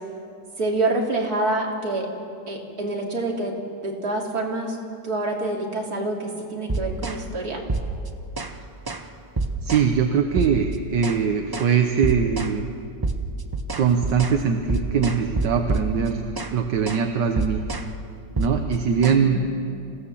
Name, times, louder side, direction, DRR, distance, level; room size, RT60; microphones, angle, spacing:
voice 1, 0.6-2.1 2.5-3.5 3.8-4.8 5.0-7.6 19.1-19.8, right 2 dB, 60° right, -1 dB, 3.2 m, -27 dB
sound 1, 6.7-7.2 7.7-8.6 8.9-9.1 9.4-9.9 10.4-11.2 11.5-11.7 12.0-12.6 13.0-16.6 16.9-17.1 17.4-17.9 18.4-19.2, right 3 dB, 35° right, 0.3 m, -28 dB
voice 2, 9.6-12.7 13.8-16.2 16.5-17.6 18.4-19.4, right 6 dB, 80° right, 4 dB, 1.7 m, -22 dB
27.5 x 16.5 x 7.2 m, 2.5 s
omnidirectional pair, 1.9 m